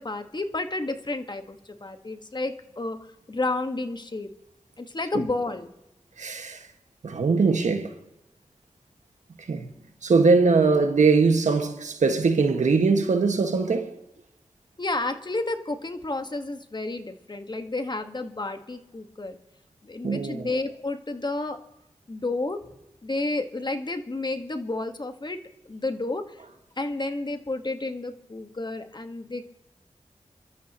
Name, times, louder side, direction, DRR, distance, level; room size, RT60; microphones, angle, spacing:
voice 1, 0.0-3.0 3.3-4.3 4.8-5.7 14.8-19.4 19.8-21.6 22.1-22.6 23.0-25.4 25.6-26.4 26.8-29.4, left 2 dB, 35° left, 1.4 m, -31 dB
voice 2, 6.2-6.6 7.0-7.9 9.5-9.7 10.0-13.9 20.0-20.5, right 4 dB, 85° right, 1.6 m, -21 dB
27.0 x 13.0 x 3.0 m
wide cardioid pair, 60°, 12 cm